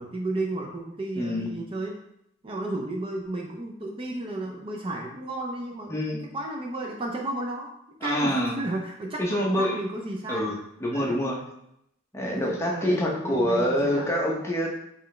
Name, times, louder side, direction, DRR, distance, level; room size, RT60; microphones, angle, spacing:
voice 1, 0.0-1.9 2.4-6.0 6.3-7.7 8.0-10.5 10.9-11.2 12.3-14.1, right 2 dB, 25° right, 0 dB, 0.4 m, -33 dB
voice 2, 1.1-1.5 5.9-6.2 8.0-8.6 9.2-9.8 10.3-11.4 12.1-14.8, equal, 15° left, -2 dB, 0.6 m, -26 dB
4.4 x 3.1 x 3.2 m, 0.77 s
head